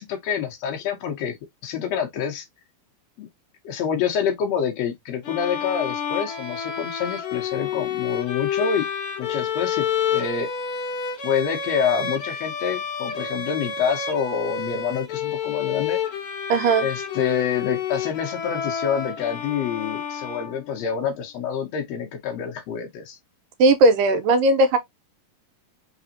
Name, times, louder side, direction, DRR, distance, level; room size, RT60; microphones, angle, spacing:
voice 1, 0.0-1.4 1.6-2.5 3.2-3.3 3.6-8.8 9.2-10.5 11.2-16.0 16.8-23.2, left 7 dB, 70° left, 1.7 m, -27 dB
sound 1, 5.2-20.9, left 7 dB, 90° left, 1.1 m, -29 dB
voice 2, 16.5-16.9 23.6-24.8, right 2 dB, 85° right, 2.5 m, -17 dB
5.0 x 3.5 x 2.7 m
omnidirectional pair, 3.9 m